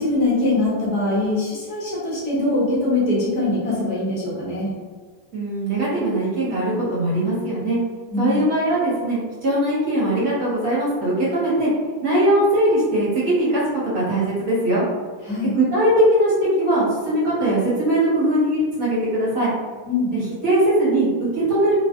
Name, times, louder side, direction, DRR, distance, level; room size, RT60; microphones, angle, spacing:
voice 1, 0.0-4.7 8.1-8.4 15.2-15.5 19.9-20.1, left 2 dB, 45° left, -8 dB, 1.0 m, -22 dB
voice 2, 5.3-7.8 8.2-11.7 12.0-14.9 15.4-19.5 20.1-21.7, right 1 dB, 35° right, -8 dB, 1.0 m, -20 dB
2.4 x 2.1 x 2.5 m, 1.5 s
supercardioid pair, 175°, 0 cm